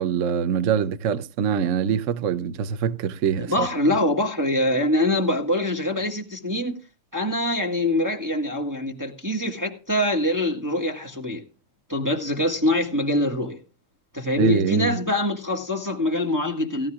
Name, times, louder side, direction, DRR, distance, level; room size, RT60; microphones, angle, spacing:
voice 1, 0.0-3.7 14.4-14.9, right 7 dB, 75° right, 0.7 m, -24 dB
voice 2, 3.4-6.8 7.1-11.4 11.9-13.6 14.1-16.9, left 1 dB, 10° right, 1.5 m, -24 dB
17.5 x 12.5 x 2.4 m
omnidirectional pair, 2.4 m